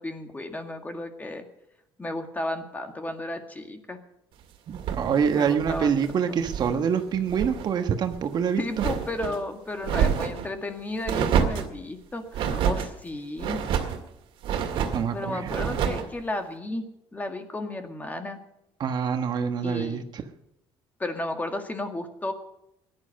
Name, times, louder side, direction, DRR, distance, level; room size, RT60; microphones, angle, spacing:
voice 1, 0.0-1.4 2.0-4.0 5.3-5.9 8.6-13.6 15.1-16.9 17.1-18.4 19.6-20.0 21.0-22.3, left 2 dB, 20° left, 6 dB, 1.9 m, -33 dB
voice 2, 4.7-8.8 14.9-15.8 18.8-20.2, right 7 dB, 50° right, 7 dB, 1.3 m, -26 dB
sound 1, 4.7-6.8 7.1-7.7 8.1-9.4 9.8-10.5 11.1-11.7 12.3-12.9 13.4-14.0 14.4-15.1 15.5-16.1, right 8 dB, 70° right, 2.1 m, -28 dB
17.0 x 11.0 x 6.5 m, 0.83 s
cardioid pair, 120°, 9 cm